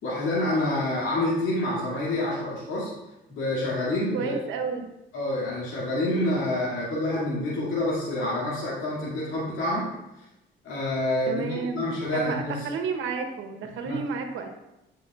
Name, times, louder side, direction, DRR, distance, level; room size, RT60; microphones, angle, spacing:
voice 1, 0.0-2.9 3.3-4.3 5.1-9.9 10.6-12.7 13.8-14.0, left 1 dB, 90° left, -7 dB, 2.4 m, -27 dB
voice 2, 4.1-4.9 11.3-11.9 12.1-14.5, right 5 dB, 90° right, 5 dB, 1.0 m, -31 dB
12.5 x 5.6 x 2.4 m, 0.94 s
cardioid pair, 90°, 20 cm